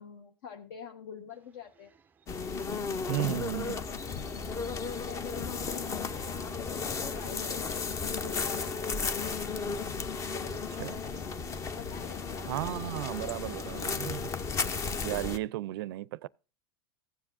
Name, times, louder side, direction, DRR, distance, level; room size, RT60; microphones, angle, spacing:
voice 1, 0.0-1.9 5.0-8.9 11.8-12.9 13.2-13.5, left 7 dB, 65° left, 1.1 m, -46 dB
sound 1, 1.3-15.3, right 4 dB, 15° right, 0.4 m, -50 dB
sound 2, 2.3-15.4, left 5 dB, 25° left, 0.6 m, -34 dB
voice 2, 3.1-3.9 10.5-11.0 12.5-14.3 15.0-16.3, right 16 dB, 75° right, 0.4 m, -35 dB
15.5 x 7.3 x 2.5 m
supercardioid pair, 135°, 12 cm